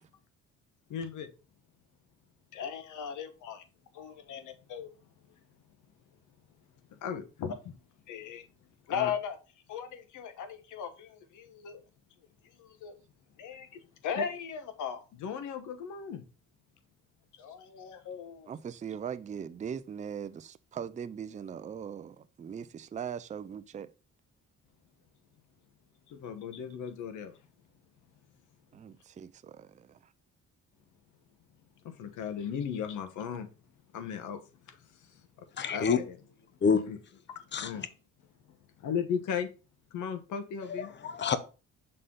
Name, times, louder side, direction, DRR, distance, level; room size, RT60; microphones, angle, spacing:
voice 1, 0.9-1.3 2.5-3.6 3.9-4.9 7.0-7.7 8.1-8.4 8.9-9.4 9.7-11.8 12.6-13.0 13.4-16.2 17.4-18.5 26.1-27.3 31.8-33.5 33.9-34.4 34.7-34.8 35.1-35.2 35.6-36.2 36.9-37.0 37.3-37.8 38.8-39.5 39.9-40.9, left 7 dB, 80° left, 1.1 m, -37 dB
voice 2, 18.5-23.9 28.7-30.0, right 8 dB, 25° right, 0.4 m, -40 dB
voice 3, 35.6-36.0 36.6-36.8 37.5-37.7 40.7-41.4, left 6 dB, 35° left, 0.8 m, -27 dB
6.6 x 3.9 x 3.7 m
cardioid pair, 90°, 30 cm